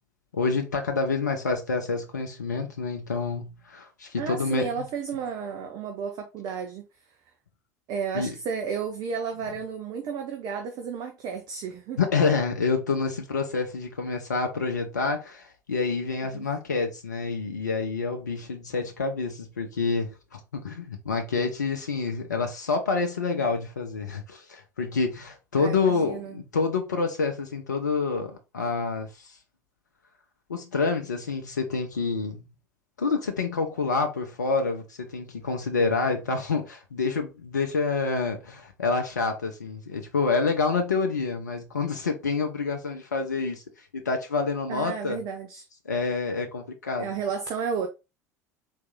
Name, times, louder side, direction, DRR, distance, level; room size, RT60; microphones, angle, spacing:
voice 1, 0.3-4.7 8.1-8.3 12.0-29.4 30.5-32.4 33.0-45.2 45.9-47.1, left 4 dB, 80° left, 0.6 m, -28 dB
voice 2, 4.2-6.8 7.9-12.0 16.3-16.5 25.6-26.4 44.7-45.7 47.0-47.9, right 6 dB, 45° right, 0.7 m, -32 dB
4.1 x 2.7 x 3.7 m
figure-of-eight pair, 70°, 9 cm